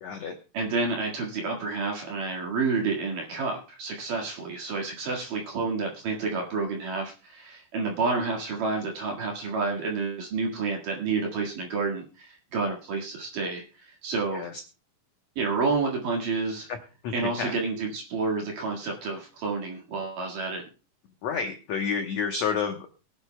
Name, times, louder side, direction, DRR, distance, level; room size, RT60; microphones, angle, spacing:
voice 1, 0.0-0.4 14.3-14.6 16.7-16.8 17.0-17.6 21.2-23.1, left 6 dB, 90° left, 4 dB, 1.5 m, -30 dB
voice 2, 0.5-14.5 15.4-16.7 17.1-20.6, right 4 dB, 60° right, 0 dB, 3.2 m, -29 dB
23.5 x 9.7 x 2.2 m, 0.33 s
omnidirectional pair, 4.6 m